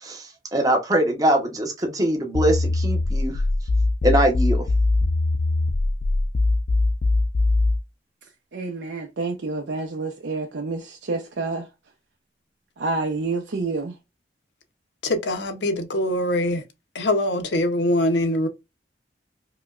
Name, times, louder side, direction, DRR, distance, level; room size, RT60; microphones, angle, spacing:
voice 1, 0.0-3.4 4.0-4.7, right 1 dB, 20° right, 0.8 m, -22 dB
sound 1, 2.3-7.8, left 2 dB, 45° left, 0.3 m, -21 dB
voice 2, 8.5-11.7 12.8-14.0, right 3 dB, 80° right, 0.6 m, -28 dB
voice 3, 15.0-16.6 16.9-18.5, left 1 dB, 75° left, 0.7 m, -23 dB
4.8 x 2.2 x 2.4 m
head